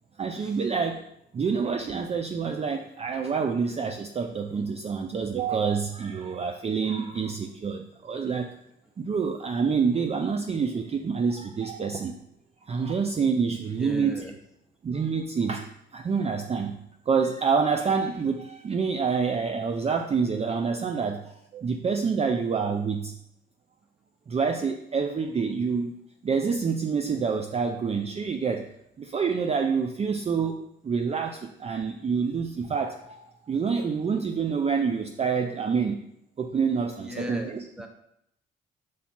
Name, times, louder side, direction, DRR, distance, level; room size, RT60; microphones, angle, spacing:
voice 1, 0.2-1.0 1.3-8.5 9.0-12.2 12.7-14.3 14.8-15.7 15.9-16.7 17.1-23.1 24.3-25.9 26.2-28.7 29.0-36.0 36.4-37.7, right 5 dB, 30° right, 5 dB, 0.5 m, -27 dB
voice 2, 13.7-14.3 21.0-21.1 37.0-37.9, left 1 dB, 5° right, 3 dB, 1.0 m, -38 dB
5.7 x 4.8 x 4.3 m, 0.76 s
cardioid pair, 90°, 20 cm